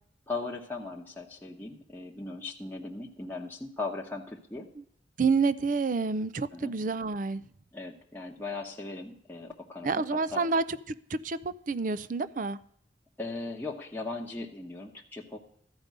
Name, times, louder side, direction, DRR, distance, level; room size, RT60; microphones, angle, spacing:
voice 1, 0.3-4.7 6.5-6.7 7.7-10.5 13.2-15.4, left 3 dB, 10° left, 1.0 m, -38 dB
voice 2, 5.2-7.5 9.8-12.6, right 4 dB, 45° right, 0.4 m, -29 dB
13.5 x 5.2 x 9.2 m
head